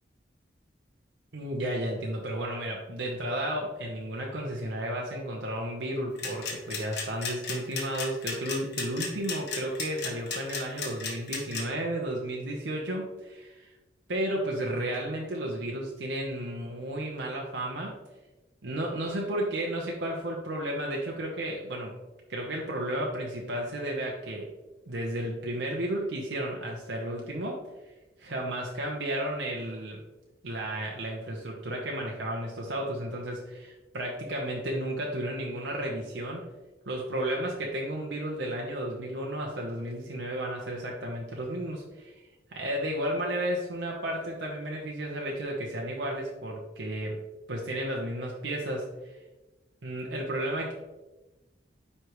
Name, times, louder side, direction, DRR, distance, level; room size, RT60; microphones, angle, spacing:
voice 1, 1.3-13.7 14.1-17.9 18.6-22.0 22.3-24.5 24.9-27.7 28.2-30.0 30.4-36.5 36.9-47.2 47.5-49.2 49.8-50.7, right 1 dB, 90° right, -1 dB, 0.8 m, -33 dB
sound 1, 6.2-11.6, left 5 dB, 70° left, 1.4 m, -33 dB
9.6 x 3.3 x 3.0 m, 1.1 s
head